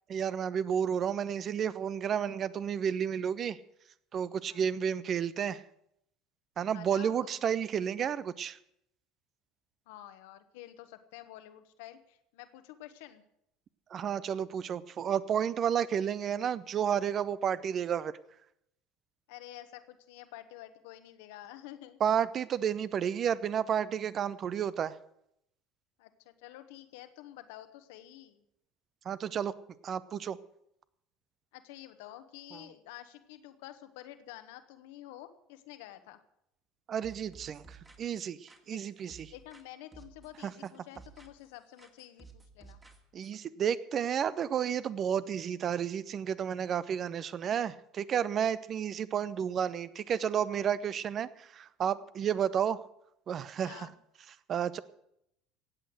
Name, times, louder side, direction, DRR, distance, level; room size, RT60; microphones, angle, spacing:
voice 1, 0.1-3.6 4.1-5.6 6.6-8.6 13.9-18.1 22.0-25.0 29.0-29.5 29.8-30.4 32.5-32.6 36.9-39.3 40.4-40.5 43.1-52.8 53.3-53.9 54.5-54.8, right 8 dB, 45° right, 17 dB, 0.8 m, -31 dB
voice 2, 6.7-7.4 9.9-13.2 19.3-22.0 26.0-28.4 31.5-36.2 38.7-38.8 39.3-42.8 53.5-53.9, left 14 dB, 70° left, 10 dB, 1.3 m, -49 dB
sound 1, 37.0-39.7 39.9-41.5 41.8-43.4, right 4 dB, 20° right, 2.5 m, -55 dB
16.5 x 8.4 x 7.9 m, 0.78 s
hypercardioid pair, 70°, 0 cm